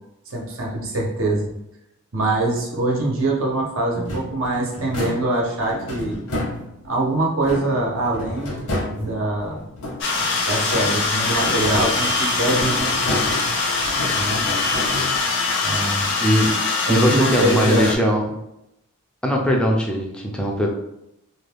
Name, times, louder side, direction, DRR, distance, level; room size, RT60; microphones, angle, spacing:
voice 1, 0.3-1.5 2.1-6.2 6.8-9.6 10.2-13.2 14.1-14.4 15.6-16.1 16.9-18.0, right 2 dB, 65° right, -1 dB, 0.7 m, -24 dB
sound 1, 3.9-7.0 7.4-10.3 10.6-15.5, left 1 dB, 85° left, 0.9 m, -30 dB
sound 2, 10.0-18.0, left 3 dB, 55° left, 0.6 m, -23 dB
voice 2, 16.2-16.5 16.9-18.3 19.2-20.7, equal, 5° left, 0 dB, 0.4 m, -20 dB
2.5 x 2.2 x 3.3 m, 0.84 s
head